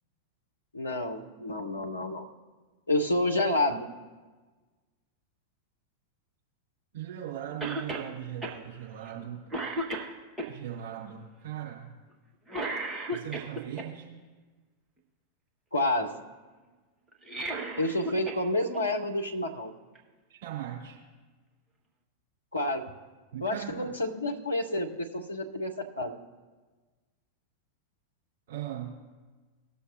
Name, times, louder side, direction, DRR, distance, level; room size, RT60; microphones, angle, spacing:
voice 1, 0.7-2.3 2.9-3.9 15.7-16.1 17.8-19.7 22.5-22.9 23.4-26.2, left 1 dB, 75° left, 3 dB, 0.8 m, -29 dB
voice 2, 6.9-9.4 10.5-11.9 13.1-14.1 20.3-21.0 23.3-23.9 28.5-28.9, right 11 dB, 55° right, -5 dB, 3.3 m, -39 dB
Cough, 7.6-8.1 8.4-8.6 9.0-9.2 9.5-10.5 12.5-13.9 17.1-18.4 18.7-18.8 19.9-20.0, right 1 dB, 10° right, 1.4 m, -34 dB
19.5 x 6.9 x 2.6 m, 1.3 s
figure-of-eight pair, 90°, 0 cm